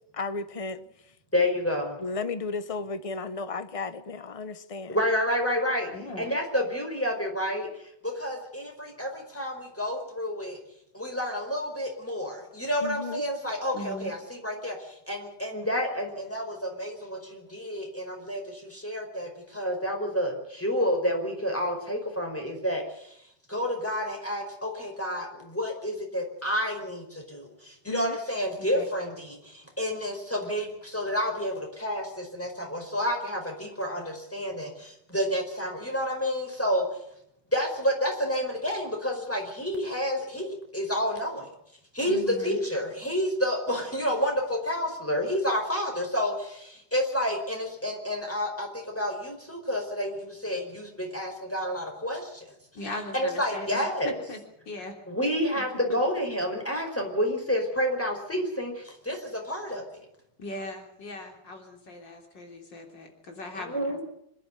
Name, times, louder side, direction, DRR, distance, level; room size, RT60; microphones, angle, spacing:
voice 1, 0.1-1.1 2.0-5.0 12.8-13.2 27.9-28.2, left 4 dB, 25° left, 12 dB, 0.8 m, -34 dB
voice 2, 1.3-2.0 4.9-5.9 6.2-10.6 10.9-23.2 23.5-36.9 37.5-41.5 41.9-42.2 42.4-52.5 53.1-54.2 55.1-59.9 63.5-64.0, equal, 5° left, 2 dB, 4.9 m, -29 dB
voice 3, 5.9-6.3 13.7-14.1 28.6-28.8 42.0-42.6 52.7-55.0 55.9-56.0 60.4-64.0, left 1 dB, 85° left, 3 dB, 4.2 m, -39 dB
26.0 x 11.0 x 10.0 m, 0.75 s
omnidirectional pair, 1.9 m